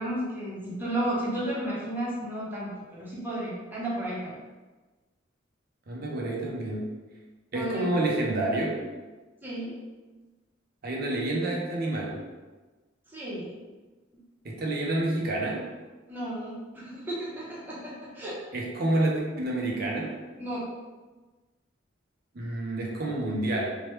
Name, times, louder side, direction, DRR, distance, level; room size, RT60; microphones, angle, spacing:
voice 1, 0.0-4.4 7.5-7.9 9.4-9.7 13.1-13.5 16.1-18.4 20.4-20.7, right 1 dB, 10° right, -8 dB, 0.7 m, -33 dB
voice 2, 5.9-6.9 7.5-8.8 10.8-12.2 14.4-15.7 18.5-20.2 22.3-23.8, right 1 dB, 50° right, -2 dB, 0.5 m, -28 dB
3.1 x 2.1 x 2.9 m, 1.3 s
head